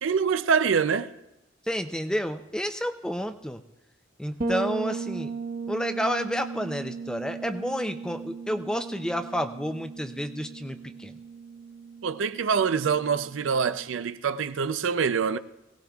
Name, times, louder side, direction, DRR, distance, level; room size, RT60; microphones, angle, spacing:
voice 1, 0.0-1.1 12.0-15.4, right 6 dB, 80° right, 0.5 m, -25 dB
voice 2, 1.7-3.6 4.2-5.3 5.7-11.1, equal, 5° left, 0.5 m, -30 dB
Bass guitar, 4.4-14.1, right 4 dB, 45° right, 1.3 m, -37 dB
22.5 x 17.5 x 2.3 m
head